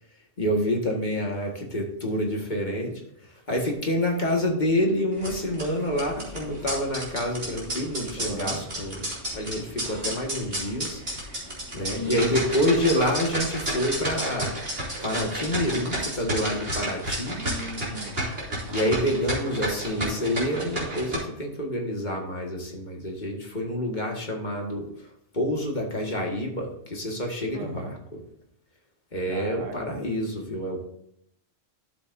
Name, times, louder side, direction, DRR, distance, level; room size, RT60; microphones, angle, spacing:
voice 1, 0.4-3.0 3.5-9.1 9.3-11.0 11.7-14.5 15.0-17.4 18.7-24.9 25.3-27.9 29.1-30.8, left 1 dB, 40° left, 0 dB, 1.8 m, -27 dB
sound 1, 5.1-21.2, right 1 dB, 50° right, 3.4 m, -32 dB
voice 2, 8.2-8.6 11.8-12.3 17.3-18.2 27.5-28.0 29.3-30.0, right 3 dB, 90° right, 6 dB, 1.5 m, -38 dB
11.5 x 7.4 x 2.6 m, 0.74 s
omnidirectional pair, 1.3 m